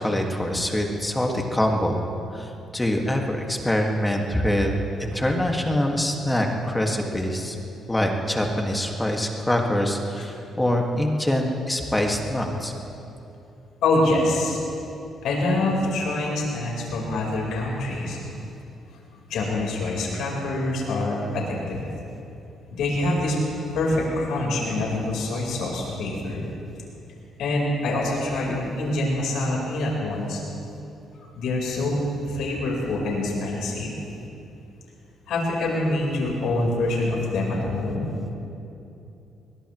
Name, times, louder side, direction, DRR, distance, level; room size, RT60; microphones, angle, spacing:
voice 1, 0.0-2.0 2.3-7.6 7.9-12.7, left 1 dB, 10° left, 1 dB, 1.9 m, -24 dB
voice 2, 13.8-14.6 15.2-18.4 19.1-21.9 22.7-23.4 23.7-26.4 27.4-30.4 31.3-33.9 35.3-38.1, left 2 dB, 80° left, -2 dB, 4.3 m, -25 dB
21.5 x 20.5 x 3.2 m, 2.8 s
cardioid pair, 90°, 0 cm